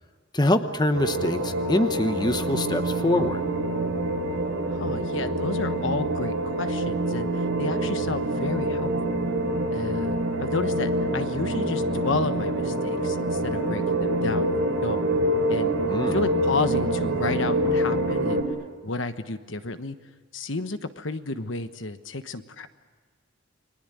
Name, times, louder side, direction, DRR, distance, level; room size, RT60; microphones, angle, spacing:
voice 1, 0.3-3.5 15.9-16.2, left 1 dB, 20° left, 9 dB, 1.1 m, -24 dB
sound 1, 0.9-18.4, right 1 dB, 90° right, 4.6 m, -26 dB
voice 2, 4.7-9.2 9.7-14.5 14.8-15.0 15.5-15.7 16.1-18.4 18.8-20.0 20.3-22.7, left 3 dB, 65° left, 10 dB, 1.2 m, -31 dB
30.0 x 21.5 x 9.2 m, 1.5 s
head